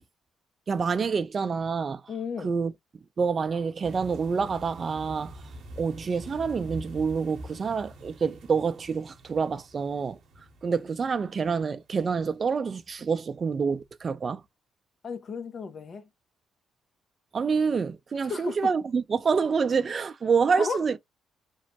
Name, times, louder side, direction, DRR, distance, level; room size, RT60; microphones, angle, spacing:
voice 1, 0.7-2.0 2.4-2.7 3.2-5.4 5.8-10.2 10.6-14.4 17.3-21.0, right 5 dB, 40° right, 0.4 m, -27 dB
voice 2, 2.1-2.5 15.0-16.1 18.3-18.6 20.6-20.8, left 5 dB, 50° left, 0.6 m, -34 dB
sound 1, 3.8-12.9 13.4-13.6 13.9-14.0, right 1 dB, 70° right, 0.9 m, -46 dB
3.0 x 2.0 x 2.8 m
cardioid pair, 90°, 0 cm